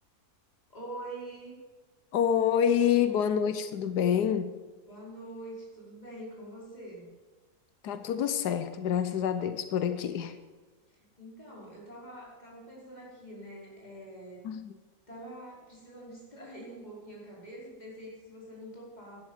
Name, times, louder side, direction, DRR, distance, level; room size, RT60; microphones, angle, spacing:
voice 1, 0.7-1.6 4.9-7.1 10.9-14.4 15.1-19.2, right 1 dB, 25° left, -4 dB, 5.3 m, -45 dB
voice 2, 2.1-4.5 7.8-10.3 14.4-14.7, left 8 dB, 90° left, 10 dB, 1.4 m, -27 dB
12.5 x 11.5 x 7.3 m, 1.3 s
omnidirectional pair, 1.7 m